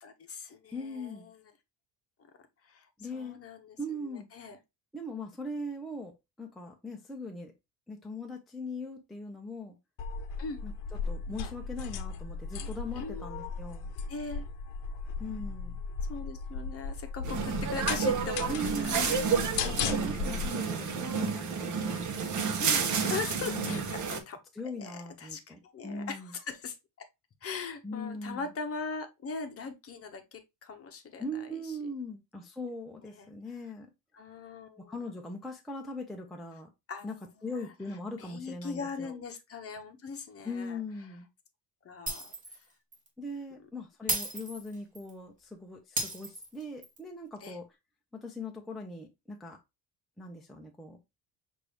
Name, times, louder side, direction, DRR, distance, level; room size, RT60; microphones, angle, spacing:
voice 1, 0.0-1.5 2.6-4.6 10.4-10.6 13.0-13.2 14.1-14.4 16.1-19.9 22.6-24.4 24.8-27.1 27.4-31.8 33.0-33.3 34.1-34.9 36.9-37.7 38.2-40.8 41.8-42.7 44.0-44.2 47.4-47.6, left 4 dB, 35° left, 0.8 m, -41 dB
voice 2, 0.7-1.3 3.0-3.4 3.8-4.3 4.9-7.5 7.9-9.8 10.6-10.7 11.1-13.9 15.2-15.8 18.5-19.2 19.6-22.1 23.4-24.1 24.6-26.3 27.8-28.5 31.2-33.9 34.9-36.7 37.0-37.1 37.4-39.2 40.4-41.3 43.2-47.7 48.1-49.6 50.2-51.0, left 1 dB, ahead, 0.5 m, -40 dB
sound 1, 10.0-20.5, left 5 dB, 85° left, 0.8 m, -36 dB
sound 2, 17.2-24.2, right 6 dB, 45° right, 0.9 m, -30 dB
Shatter, 42.1-42.6 42.9-43.1 44.1-45.1 46.0-47.0, right 1 dB, 20° right, 1.4 m, -34 dB
5.9 x 2.6 x 3.3 m
cardioid pair, 150°, 42 cm